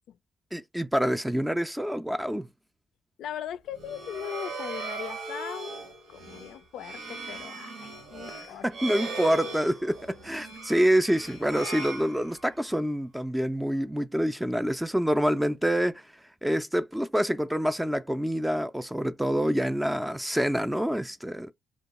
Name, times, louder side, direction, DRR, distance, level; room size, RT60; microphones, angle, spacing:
voice 1, 0.5-2.5 8.6-16.0 16.4-21.5, equal, 5° right, 0.4 m, -27 dB
voice 2, 3.2-5.8 6.1-8.7, left 10 dB, 80° left, 0.3 m, -39 dB
sound 1, 3.7-12.7, right 3 dB, 80° right, 1.2 m, -38 dB
2.8 x 2.3 x 4.0 m
cardioid pair, 90°, 0 cm